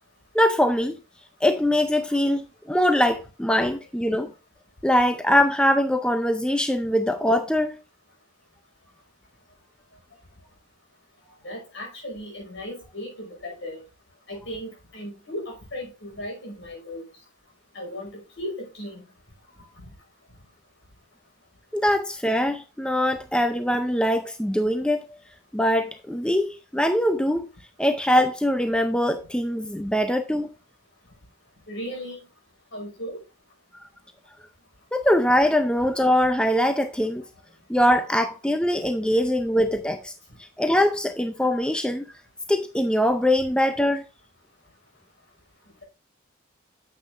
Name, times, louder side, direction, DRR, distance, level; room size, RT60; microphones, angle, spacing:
voice 1, 0.3-1.0 1.4-4.3 4.8-7.8 21.7-25.1 25.5-27.5 27.8-30.5 34.9-37.2 37.7-40.1 40.6-42.0 42.5-44.0, left 1 dB, 5° left, 0.5 m, -22 dB
voice 2, 11.4-13.8 14.3-17.1 17.7-19.0 19.6-19.8 31.7-32.2 32.7-33.2, left 1 dB, 65° left, 5.4 m, -36 dB
9.5 x 7.7 x 2.5 m
head